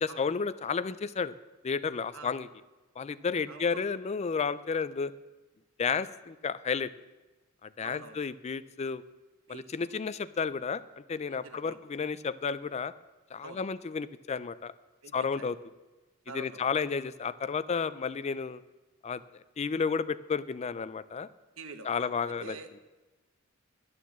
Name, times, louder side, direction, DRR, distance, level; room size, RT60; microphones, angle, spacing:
voice 1, 0.0-1.3 1.6-2.5 3.0-5.1 5.8-6.9 7.6-9.0 9.5-10.8 11.1-12.9 13.3-14.7 15.1-15.6 16.3-18.6 19.0-19.2 19.6-21.3 21.8-22.6, left 5 dB, 30° left, 16 dB, 0.4 m, -32 dB
voice 2, 3.5-3.9 5.8-6.0 7.8-8.3 9.5-9.9 11.2-11.8 13.4-13.6 15.0-15.5 16.3-16.6 21.6-22.8, right 3 dB, 70° right, 9 dB, 1.2 m, -47 dB
11.0 x 9.4 x 7.2 m, 1.2 s
head